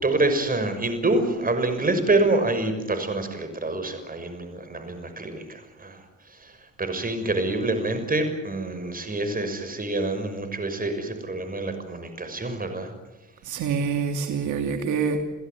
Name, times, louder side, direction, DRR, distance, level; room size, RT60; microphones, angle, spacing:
voice 1, 0.0-6.0 6.3-12.9, right 2 dB, 30° right, 8 dB, 6.3 m, -26 dB
voice 2, 13.4-15.2, right 6 dB, 80° right, 5 dB, 2.7 m, -26 dB
29.5 x 16.0 x 9.6 m, 1.1 s
cardioid pair, 90°, 30 cm